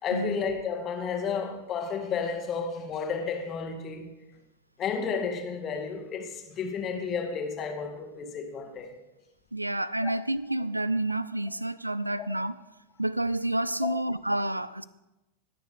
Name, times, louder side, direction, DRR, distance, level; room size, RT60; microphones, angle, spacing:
voice 1, 0.0-4.1 4.8-8.9 10.0-10.1 13.8-13.9, left 6 dB, 30° left, 1.6 m, -32 dB
voice 2, 9.5-12.5 13.0-14.8, right 1 dB, 85° right, 0.3 m, -29 dB
20.0 x 6.7 x 3.6 m
figure-of-eight pair, 90°, 0 cm